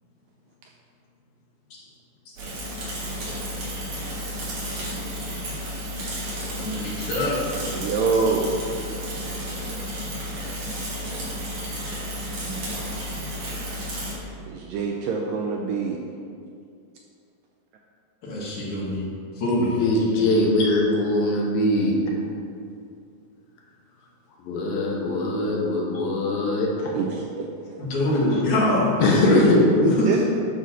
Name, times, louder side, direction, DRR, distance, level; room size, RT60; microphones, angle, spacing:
Bicycle / Mechanisms, 2.4-14.1, equal, 55° right, 2.5 m, -32 dB
voice 1, 6.6-7.4 18.2-19.1 19.4-19.8 27.8-29.4 29.7-30.2, left 1 dB, 60° left, -6 dB, 2.5 m, -24 dB
voice 2, 7.7-8.4 14.5-16.0 26.9-27.5 30.1-30.2, right 5 dB, 85° right, 0 dB, 2.0 m, -25 dB
voice 3, 19.8-22.0 24.4-26.9 29.0-29.6, left 1 dB, 80° left, -2 dB, 2.6 m, -21 dB
10.5 x 6.3 x 2.7 m, 2.3 s
omnidirectional pair, 4.3 m